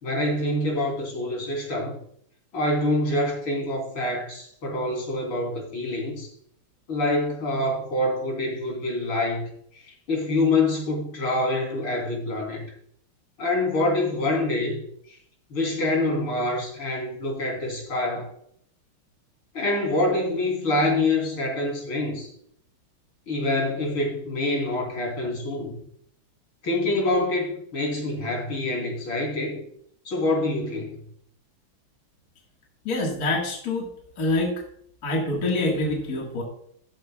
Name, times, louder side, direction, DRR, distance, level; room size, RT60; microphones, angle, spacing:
voice 1, 0.0-2.0 2.5-6.3 6.9-12.6 13.4-15.2 15.5-18.3 19.5-22.3 23.3-25.7 26.6-29.7 30.1-30.9, left 2 dB, 75° left, -1 dB, 4.1 m, -26 dB
voice 2, 32.9-33.9 34.2-34.5 35.0-36.4, left 2 dB, 45° left, -1 dB, 2.1 m, -25 dB
13.0 x 9.3 x 2.3 m, 0.65 s
omnidirectional pair, 2.3 m